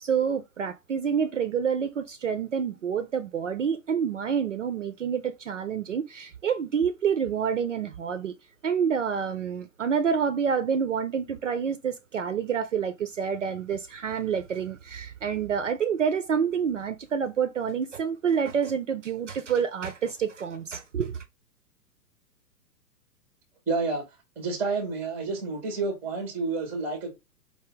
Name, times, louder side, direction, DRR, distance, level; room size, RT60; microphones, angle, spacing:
voice 1, 0.0-8.3 8.6-21.2, right 7 dB, 50° right, 0.5 m, -28 dB
voice 2, 23.7-24.0 24.4-27.1, right 3 dB, 5° right, 0.6 m, -29 dB
4.6 x 2.1 x 3.5 m
figure-of-eight pair, 115°, 50 cm